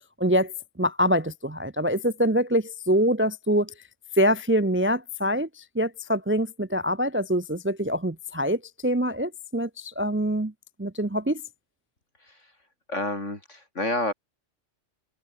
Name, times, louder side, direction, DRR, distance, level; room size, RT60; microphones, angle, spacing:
voice 1, 0.2-0.5 0.8-3.7 4.2-10.5 10.8-11.4, equal, 15° right, 0.4 m, -25 dB
voice 2, 12.9-14.1, left 2 dB, 80° left, 6.6 m, -29 dB
omnidirectional pair, 1.2 m